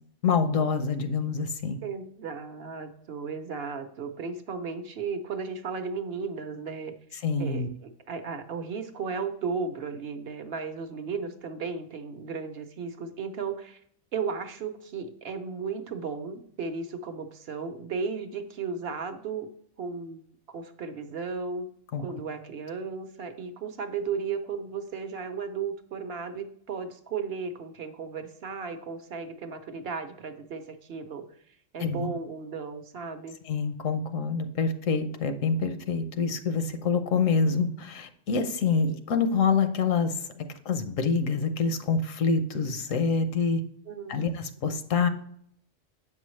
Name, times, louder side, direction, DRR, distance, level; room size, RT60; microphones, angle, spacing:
voice 1, 0.2-1.8 7.2-7.7 21.9-22.0 31.8-32.1 33.5-40.2 40.6-43.6 44.1-45.1, left 5 dB, 80° left, 8 dB, 1.1 m, -26 dB
voice 2, 1.8-13.8 14.1-19.5 19.8-20.2 20.5-21.7 22.0-31.2 31.7-33.3 43.9-44.3, right 5 dB, 55° right, 7 dB, 0.9 m, -35 dB
7.8 x 5.5 x 3.1 m, 0.66 s
omnidirectional pair, 1.3 m